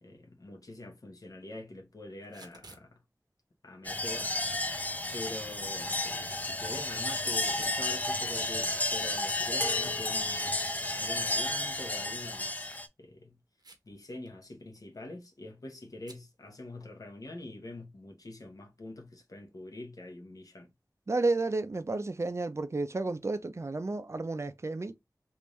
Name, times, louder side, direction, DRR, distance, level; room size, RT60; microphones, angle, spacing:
voice 1, 0.0-3.0 3.6-4.3 5.1-10.6 11.0-13.4 13.8-20.7, left 2 dB, 60° left, 1.0 m, -45 dB
Packing tape duct tape / Tearing, 2.2-2.9 5.8-6.1 7.1-7.8 8.2-8.3 9.0-9.6 9.8-9.9 10.3-10.4 12.4-12.7 13.6-14.0 14.3-14.4 14.6-14.9 16.0-16.2, right 2 dB, 85° right, 0.9 m, -52 dB
sound 1, 3.8-12.9, left 2 dB, 25° left, 0.5 m, -32 dB
voice 2, 21.1-24.9, right 3 dB, 45° right, 0.5 m, -31 dB
3.4 x 2.6 x 3.1 m
wide cardioid pair, 70°, 7 cm